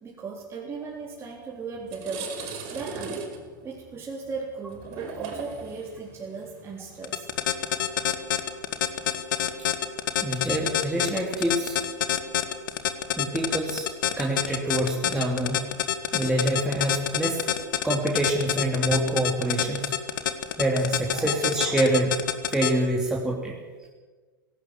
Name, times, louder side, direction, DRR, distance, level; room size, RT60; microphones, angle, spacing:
voice 1, 0.0-2.4 2.7-7.3, right 4 dB, 20° right, -3 dB, 3.8 m, -37 dB
sound 1, 1.2-1.4 1.7-9.0, right 5 dB, 50° right, 5.3 m, -39 dB
sound 2, 7.0-22.8, left 11 dB, 70° left, 1.9 m, -25 dB
voice 2, 10.2-11.8 13.2-13.9 14.2-15.6 16.1-17.4 17.8-19.9 20.6-22.2 22.5-23.6, right 1 dB, 5° right, -2 dB, 3.0 m, -26 dB
18.0 x 17.0 x 9.2 m, 1.4 s
hypercardioid pair, 95°, 11 cm